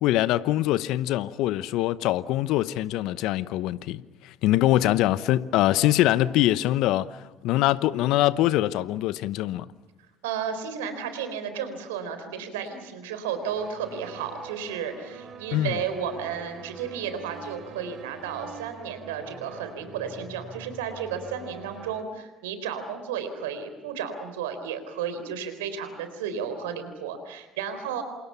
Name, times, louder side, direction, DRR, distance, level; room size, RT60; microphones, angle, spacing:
voice 1, 0.0-9.7 15.5-15.8, left 15 dB, 65° left, 0.9 m, -23 dB
voice 2, 10.2-28.0, right 7 dB, 80° right, 3.9 m, -33 dB
sound 1, 13.4-22.0, right 5 dB, 50° right, 4.0 m, -45 dB
28.5 x 28.0 x 5.8 m
hypercardioid pair, 55°, 0 cm